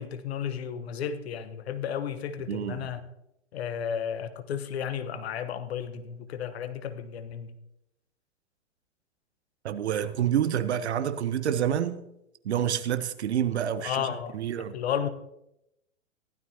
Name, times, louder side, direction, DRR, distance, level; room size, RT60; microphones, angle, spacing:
voice 1, 0.0-3.0 3.5-7.5 13.8-14.4 14.7-15.1, left 8 dB, 55° left, 1.2 m, -33 dB
voice 2, 2.5-2.9 9.6-12.0 12.4-14.7, right 9 dB, 60° right, 1.1 m, -28 dB
15.5 x 12.0 x 2.8 m
figure-of-eight pair, 105°, 38 cm